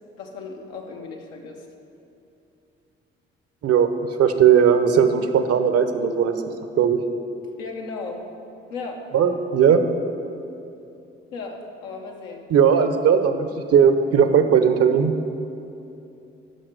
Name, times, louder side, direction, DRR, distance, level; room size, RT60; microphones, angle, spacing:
voice 1, 0.1-1.7 7.6-8.3 8.7-9.1 11.3-12.5, left 4 dB, 80° left, 1 dB, 0.9 m, -35 dB
voice 2, 3.6-3.9 4.2-6.4 6.8-7.0 9.1-9.8 12.5-15.1, right 7 dB, 55° right, 9 dB, 0.7 m, -17 dB
6.4 x 5.9 x 6.6 m, 2.7 s
hypercardioid pair, 45°, 29 cm